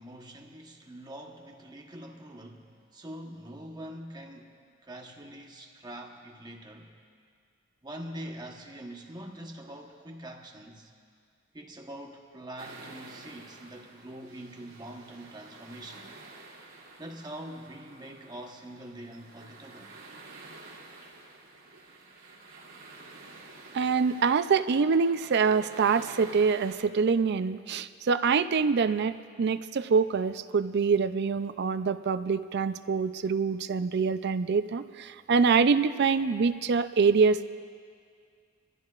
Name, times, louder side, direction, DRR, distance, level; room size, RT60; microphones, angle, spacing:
voice 1, 0.0-4.6 4.8-7.0 7.8-10.9 11.5-16.1 17.0-19.9, right 1 dB, 20° right, 1 dB, 1.1 m, -44 dB
sound 1, 12.6-26.7, right 3 dB, 85° right, 2.4 m, -50 dB
voice 2, 23.7-37.4, right 5 dB, 55° right, 12 dB, 0.4 m, -25 dB
24.0 x 15.0 x 2.4 m, 2.1 s
head